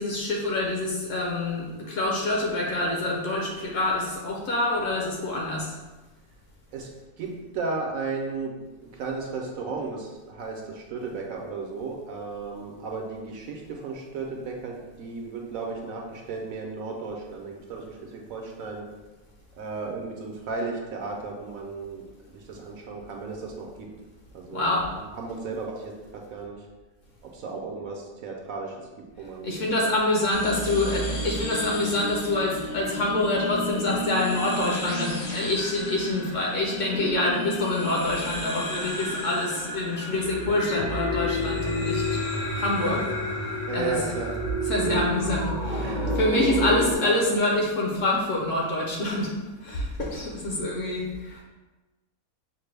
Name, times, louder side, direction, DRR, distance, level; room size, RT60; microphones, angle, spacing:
voice 1, 0.0-5.7 24.5-24.9 29.4-42.2 42.6-43.0 43.4-44.0 44.7-49.3 49.6-51.4, left 2 dB, 65° left, -2 dB, 1.0 m, -26 dB
voice 2, 7.2-18.8 19.6-22.1 22.3-23.9 24.3-26.6 27.3-28.7 29.2-29.5 29.8-29.9 30.4-31.0 42.8-43.0 43.7-44.4 45.8-46.2, right 4 dB, 70° right, 0 dB, 1.0 m, -34 dB
sound 1, 30.3-46.9, left 1 dB, 45° left, 0.6 m, -31 dB
5.9 x 2.1 x 3.2 m, 1.2 s
omnidirectional pair, 1.6 m